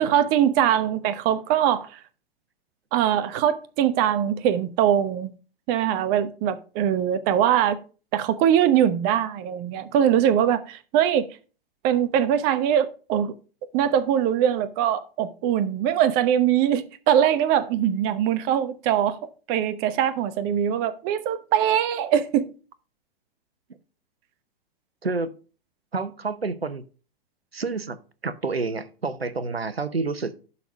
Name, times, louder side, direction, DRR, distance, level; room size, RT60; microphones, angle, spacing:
voice 1, 0.0-2.0 2.9-5.3 5.7-7.8 8.1-11.3 11.8-13.3 13.7-19.2 19.5-22.5, right 10 dB, 30° right, 0.8 m, -22 dB
voice 2, 25.0-25.3 25.9-26.8 27.5-28.0 28.2-30.3, right 4 dB, 85° right, 0.8 m, -28 dB
11.5 x 4.2 x 5.2 m
figure-of-eight pair, 105°, 30 cm